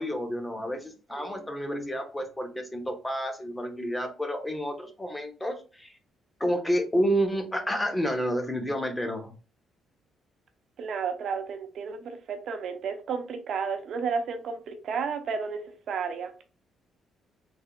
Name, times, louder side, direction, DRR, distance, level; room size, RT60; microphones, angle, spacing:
voice 1, 0.0-5.9 6.4-9.3, equal, 10° left, 0.9 m, -30 dB
voice 2, 10.8-15.6 15.9-16.3, right 5 dB, 65° right, 0.7 m, -32 dB
3.5 x 3.3 x 2.2 m
cardioid pair, 90°, 0 cm